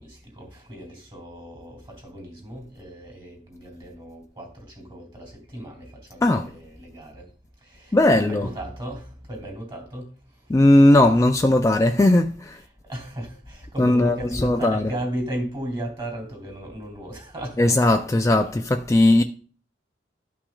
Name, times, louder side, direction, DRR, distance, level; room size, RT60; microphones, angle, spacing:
voice 1, 0.0-7.2 7.7-10.1 12.9-18.0 18.4-18.6, right 1 dB, 30° right, 2.8 m, -35 dB
voice 2, 7.9-8.5 10.5-12.6 13.8-14.2 14.4-14.8 17.6-19.2, left 1 dB, 15° left, 0.3 m, -17 dB
12.5 x 5.8 x 2.3 m
head